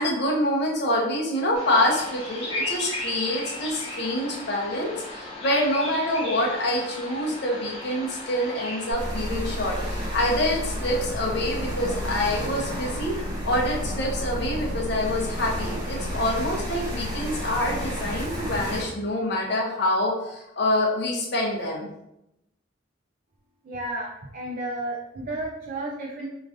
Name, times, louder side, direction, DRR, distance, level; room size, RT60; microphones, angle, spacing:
voice 1, 0.0-13.2 13.4-21.9, left 1 dB, 60° left, -1 dB, 0.7 m, -26 dB
Bird vocalization bird call bird song, 1.5-8.9, left 1 dB, 30° left, 0.8 m, -35 dB
sound 1, 8.9-18.8, equal, 20° right, 1.0 m, -31 dB
voice 2, 23.6-26.3, right 1 dB, 45° right, -2 dB, 0.4 m, -32 dB
3.0 x 2.4 x 2.5 m, 0.84 s
head